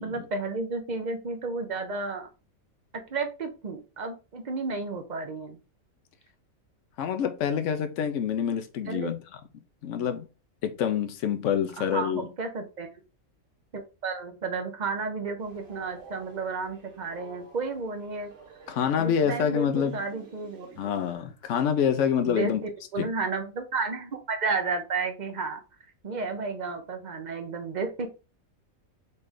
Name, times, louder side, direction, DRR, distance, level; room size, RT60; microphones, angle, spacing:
voice 1, 0.0-2.3 3.1-5.6 8.8-9.2 11.8-12.9 13.7-18.3 18.9-20.7 22.2-25.6 26.0-28.1, right 4 dB, 40° right, 0.8 m, -32 dB
voice 2, 7.0-9.2 9.8-10.3 10.6-12.3 18.7-20.0 20.8-22.6 23.0-23.1, left 8 dB, 70° left, 1.0 m, -27 dB
Train, 15.4-21.1, right 4 dB, 60° right, 1.5 m, -49 dB
4.2 x 3.2 x 3.6 m
omnidirectional pair, 1.4 m